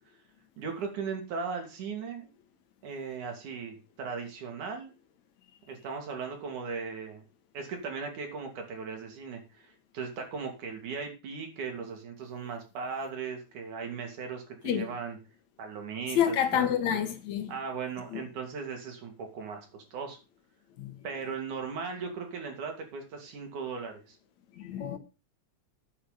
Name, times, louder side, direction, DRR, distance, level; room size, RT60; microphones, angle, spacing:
voice 1, 0.6-2.3 2.8-4.9 5.7-7.2 7.5-15.2 15.6-17.0 17.5-20.2 21.0-24.2, right 5 dB, 90° right, 4.3 m, -38 dB
voice 2, 16.1-17.5 18.1-18.2 20.8-21.0 24.6-25.0, left 9 dB, 70° left, 2.7 m, -28 dB
9.7 x 8.7 x 5.3 m
omnidirectional pair, 3.4 m